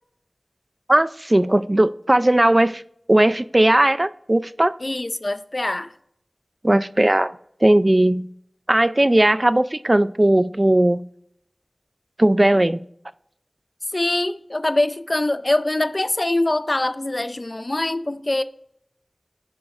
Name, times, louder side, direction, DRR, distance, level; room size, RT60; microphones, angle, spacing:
voice 1, 0.9-2.8 3.1-4.8 6.6-7.3 7.6-8.3 8.7-11.0 12.2-12.8, right 1 dB, 35° right, 0.3 m, -17 dB
voice 2, 4.8-5.9 13.9-18.4, left 2 dB, 45° left, 0.4 m, -23 dB
15.0 x 5.2 x 2.4 m
wide cardioid pair, 50°, 0 cm